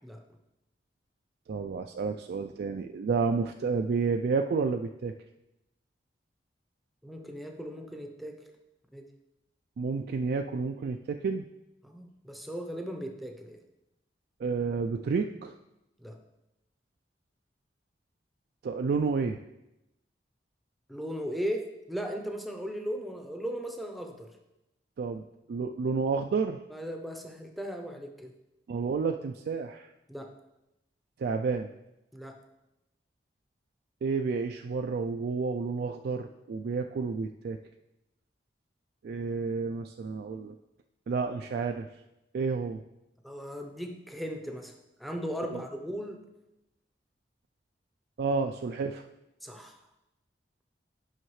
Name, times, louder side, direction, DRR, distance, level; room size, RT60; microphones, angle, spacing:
voice 1, 1.5-5.1 9.8-11.4 14.4-15.5 18.6-19.4 25.0-26.6 28.7-29.9 31.2-31.7 34.0-37.6 39.0-40.5 41.1-42.0 42.3-42.8 45.5-45.6 48.2-49.0, right 4 dB, 60° right, 5 dB, 0.3 m, -30 dB
voice 2, 7.0-8.5 8.9-9.1 11.8-13.6 16.0-16.2 20.9-24.3 26.7-28.3 30.1-30.3 32.1-32.4 43.2-46.2 49.4-49.8, equal, ahead, 3 dB, 0.7 m, -37 dB
8.9 x 5.7 x 3.1 m, 0.92 s
head